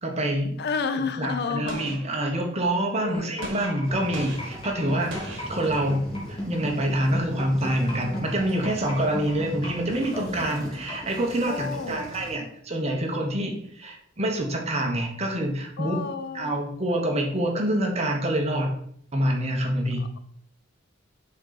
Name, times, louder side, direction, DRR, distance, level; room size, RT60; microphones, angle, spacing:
voice 1, 0.0-0.6 1.2-16.0 16.3-18.7 19.1-20.0, right 1 dB, 35° right, 2 dB, 1.1 m, -26 dB
voice 2, 0.6-2.0 3.0-3.4 11.4-12.2 15.8-16.6 20.0-20.2, left 5 dB, 55° left, 10 dB, 0.4 m, -31 dB
Gunshot gunfire, 1.7-2.7 3.4-6.2, right 2 dB, 70° right, 1.3 m, -41 dB
sound 1, 3.1-11.1, left 1 dB, 25° left, 1.6 m, -35 dB
sound 2, 3.8-12.4, equal, 5° left, 2.2 m, -42 dB
6.1 x 3.8 x 4.0 m, 0.66 s
head